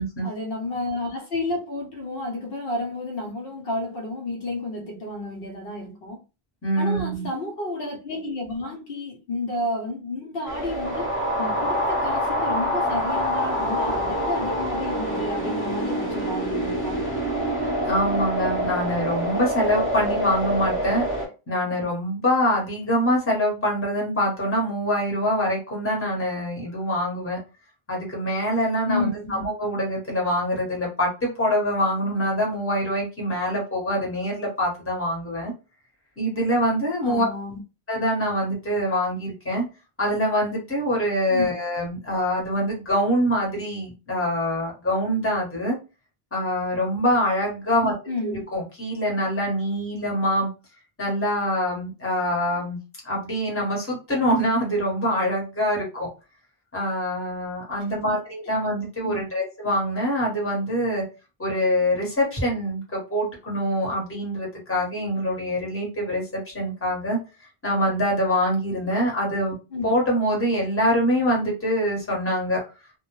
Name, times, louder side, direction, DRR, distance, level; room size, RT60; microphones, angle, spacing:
voice 1, 0.2-6.2 6.8-17.0 28.9-29.4 37.0-37.6 41.3-41.5 48.1-48.4 58.1-58.2 59.0-59.2 69.7-69.9, left 2 dB, 70° left, 0.9 m, -31 dB
voice 2, 6.6-7.3 17.8-21.1 21.5-27.4 27.9-35.5 36.2-37.3 37.9-39.7 40.0-45.8 46.3-48.0 48.2-50.5 51.0-52.8 53.0-56.1 56.7-61.0 61.4-67.2 67.6-69.5 69.8-72.6, equal, 15° left, 0.9 m, -24 dB
sound 1, 10.4-21.3, equal, 15° right, 0.8 m, -26 dB
2.1 x 2.1 x 2.9 m
omnidirectional pair, 1.0 m